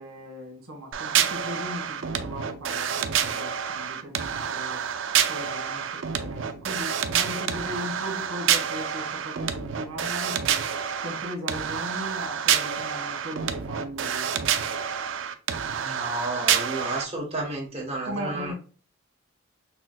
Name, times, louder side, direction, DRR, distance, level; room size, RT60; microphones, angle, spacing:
voice 1, 0.0-4.8 5.3-10.6 11.0-14.3 18.0-18.5, equal, 85° right, 1.5 m, -38 dB
sound 1, 0.9-17.0, right 8 dB, 65° right, 0.4 m, -28 dB
voice 2, 15.8-18.5, right 2 dB, 30° right, 1.4 m, -32 dB
6.1 x 2.2 x 2.4 m
head